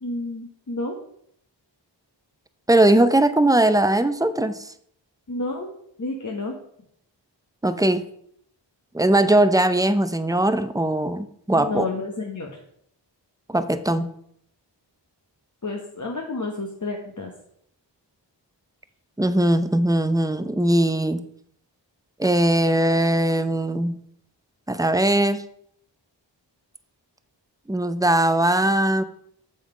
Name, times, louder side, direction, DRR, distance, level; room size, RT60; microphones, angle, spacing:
voice 1, 0.0-1.0 5.3-5.7 6.0-6.5 11.5-12.6 15.6-17.3, left 2 dB, 40° left, 0 dB, 1.2 m, -30 dB
voice 2, 2.7-4.7 7.6-8.0 8.9-11.9 13.5-14.1 19.2-21.2 22.2-24.0 24.7-25.4 27.7-29.0, right 1 dB, 10° right, 11 dB, 0.6 m, -20 dB
7.2 x 5.4 x 4.9 m, 0.69 s
wide cardioid pair, 60°, 44 cm